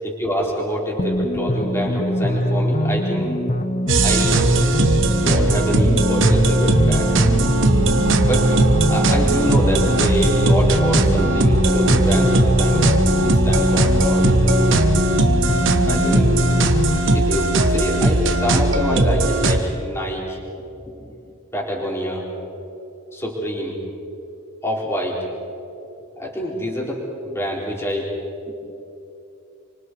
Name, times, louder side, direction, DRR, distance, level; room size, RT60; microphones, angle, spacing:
voice 1, 0.0-3.4 4.0-4.4 5.1-7.1 8.3-8.5 8.9-12.9 13.2-14.9 15.9-16.3 17.1-20.4 20.9-21.1 21.5-22.3 23.1-23.8 24.6-25.3 26.2-28.1 28.4-28.5, equal, 15° left, -3 dB, 4.5 m, -26 dB
sound 1, 1.0-17.0, equal, 35° left, 1.0 m, -23 dB
sound 2, 3.9-19.6, right 2 dB, 65° right, 1.5 m, -18 dB
sound 3, 6.5-14.7, right 2 dB, 85° right, 0.9 m, -30 dB
29.5 x 25.0 x 4.8 m, 2.8 s
head